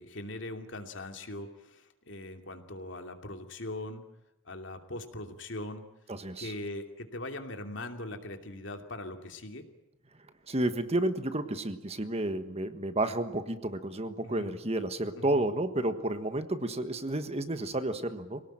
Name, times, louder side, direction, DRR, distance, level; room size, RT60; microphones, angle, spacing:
voice 1, 0.0-4.0 4.4-5.9 6.4-9.6 14.2-14.6 15.1-15.5, left 1 dB, 65° left, 5 dB, 2.8 m, -41 dB
voice 2, 6.1-6.5 10.5-18.4, right 1 dB, 30° right, 10 dB, 1.5 m, -31 dB
26.0 x 18.0 x 9.0 m, 0.96 s
head